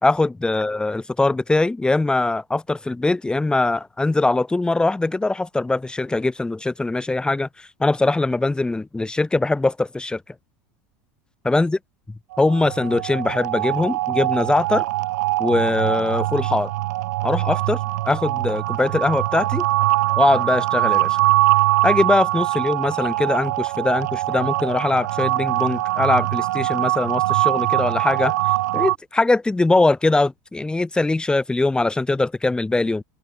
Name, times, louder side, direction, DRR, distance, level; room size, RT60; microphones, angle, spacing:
voice 1, 0.0-10.2 11.4-11.8 12.4-14.9 15.4-16.7 17.2-17.8 18.1-19.6 20.2-21.2 21.8-28.3 28.7-33.0, left 2 dB, 10° left, 1.7 m, -21 dB
sound 1, 12.3-29.0, right 17 dB, 85° right, 1.4 m, -22 dB
open air
supercardioid pair, 110°, 9 cm